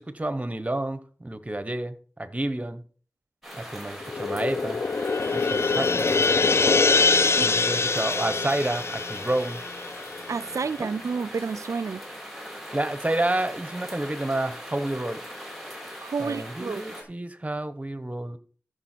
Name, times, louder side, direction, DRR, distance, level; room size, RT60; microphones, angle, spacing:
voice 1, 0.0-2.8 3.5-4.8 5.3-6.2 7.4-9.6 10.8-10.9 12.7-15.2 16.2-18.4, right 1 dB, 25° right, 1.1 m, -30 dB
sound 1, 3.4-17.0, equal, ahead, 4.7 m, -41 dB
sound 2, 4.0-10.6, left 4 dB, 55° left, 0.4 m, -24 dB
voice 2, 7.4-7.7 10.3-12.0 16.0-16.8, right 5 dB, 80° right, 0.4 m, -30 dB
14.0 x 6.6 x 4.5 m
wide cardioid pair, 60°, 5 cm